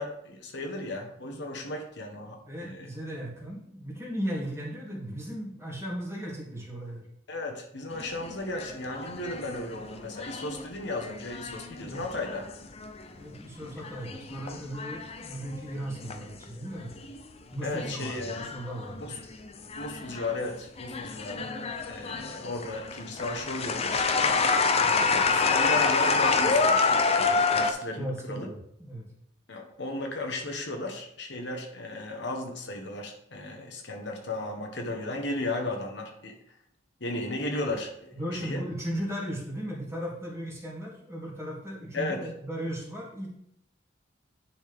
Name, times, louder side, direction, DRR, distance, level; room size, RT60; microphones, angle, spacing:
voice 1, 0.0-2.9 7.3-12.4 17.6-18.5 19.0-19.2 19.8-21.5 21.9-24.1 24.8-28.5 29.5-36.3 37.0-38.2 38.4-38.6 41.9-42.2, left 2 dB, 70° left, 3 dB, 1.2 m, -35 dB
voice 2, 2.5-7.1 11.8-12.0 13.2-16.9 17.5-19.2 28.0-29.1 38.1-43.3, equal, 15° right, -4 dB, 2.2 m, -36 dB
sound 1, 7.9-13.2 13.6-16.4 16.8-17.2 17.8-20.4 20.8-27.7, left 4 dB, 35° left, 0.5 m, -28 dB
10.0 x 4.3 x 3.5 m, 0.73 s
head